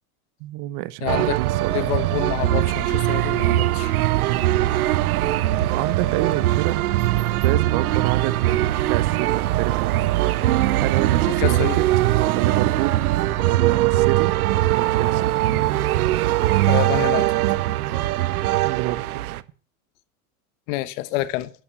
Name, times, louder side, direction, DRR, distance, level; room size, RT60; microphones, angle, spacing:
voice 1, 0.4-2.1 3.9-4.5 5.7-6.8 7.4-10.0 10.8-13.1 13.5-14.3 14.7-15.2 18.6-19.3, right 16 dB, 50° right, 0.8 m, -29 dB
voice 2, 1.0-1.4 1.7-3.9 11.4-11.8 16.7-17.3 20.7-21.5, left 17 dB, 60° left, 1.2 m, -27 dB
sound 1, 1.1-19.4, right 15 dB, 85° right, 0.8 m, -21 dB
sound 2, 4.5-15.9, equal, 10° left, 4.6 m, -46 dB
10.5 x 9.1 x 5.9 m
supercardioid pair, 120°, 43 cm